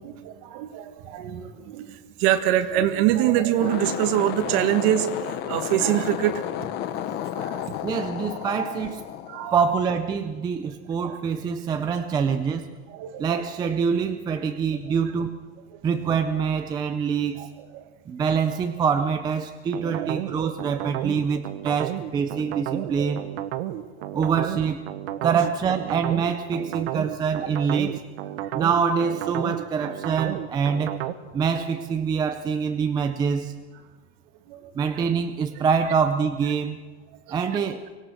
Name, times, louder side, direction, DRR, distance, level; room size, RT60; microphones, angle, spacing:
voice 1, 0.0-6.6 7.1-7.6 8.4-8.5 9.3-9.6 11.0-11.1 12.9-13.4 17.4-17.5 17.7-17.8 19.8-20.1 20.4-20.5 22.7-23.2 23.8-24.3 25.2-25.3 28.4-28.5 34.5-34.7, right 12 dB, 45° right, 9 dB, 1.6 m, -25 dB
sound 1, 3.5-10.0, left 11 dB, 30° left, 0.9 m, -32 dB
voice 2, 7.8-9.0 9.5-12.7 13.2-15.4 15.8-17.5 18.1-23.2 24.1-24.9 25.2-28.0 28.5-30.9 31.3-33.5 34.8-36.8 37.3-37.8, right 6 dB, 10° right, 7 dB, 0.5 m, -25 dB
sound 2, 19.7-31.1, right 13 dB, 60° right, 1.2 m, -32 dB
24.5 x 17.5 x 6.4 m, 1.4 s
supercardioid pair, 165°, 33 cm